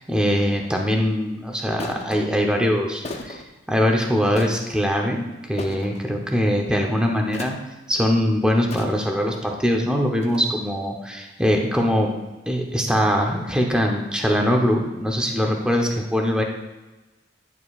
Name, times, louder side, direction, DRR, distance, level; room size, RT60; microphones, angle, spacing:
voice 1, 0.0-3.4 3.7-7.6 7.9-12.1 12.5-16.4, equal, 5° right, 1 dB, 0.8 m, -22 dB
sound 1, 0.6-0.8 1.8-2.2 3.0-3.5 4.3-4.8 5.6-6.0 7.3-7.7 8.7-9.2 10.2-10.4, left 2 dB, 35° left, 0.7 m, -35 dB
10.5 x 6.9 x 2.4 m, 1.1 s
head